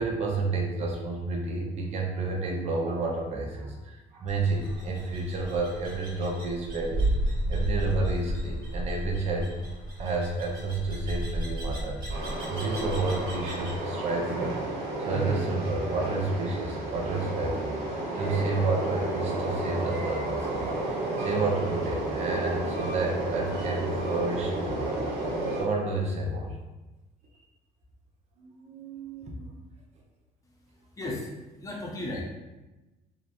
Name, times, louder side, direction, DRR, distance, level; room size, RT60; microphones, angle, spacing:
voice 1, 0.0-7.1 7.5-9.5 10.0-12.2 12.5-17.6 18.1-25.0 25.6-26.5 28.4-29.5, right 3 dB, 40° right, -1 dB, 0.5 m, -30 dB
sound 1, 4.3-13.8, right 1 dB, 25° right, 1.3 m, -33 dB
Train, 12.1-25.6, right 2 dB, 85° right, 0.7 m, -31 dB
voice 2, 30.5-32.2, left 1 dB, 20° left, -3 dB, 0.6 m, -36 dB
2.8 x 2.0 x 2.4 m, 1.1 s
cardioid pair, 110°, 17 cm